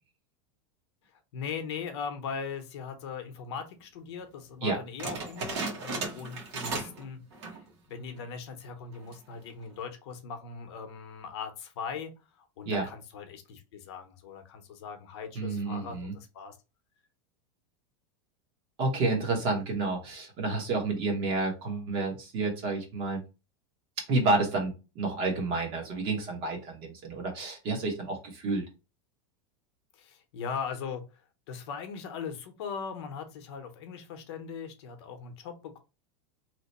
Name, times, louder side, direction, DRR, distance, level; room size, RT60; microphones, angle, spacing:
voice 1, 1.3-7.2 7.5-16.6 20.0-20.1 29.9-31.0 31.5-35.8, left 6 dB, 60° left, 6 dB, 0.7 m, -39 dB
sound 1, 5.0-7.1 7.3-7.7 8.2-8.3 8.9-9.3, right 3 dB, 65° right, 1.1 m, -35 dB
voice 2, 15.3-16.1 18.8-23.2 24.1-28.7, right 3 dB, 35° right, 2 dB, 1.0 m, -30 dB
2.9 x 2.1 x 4.0 m, 0.29 s
supercardioid pair, 170°, 16 cm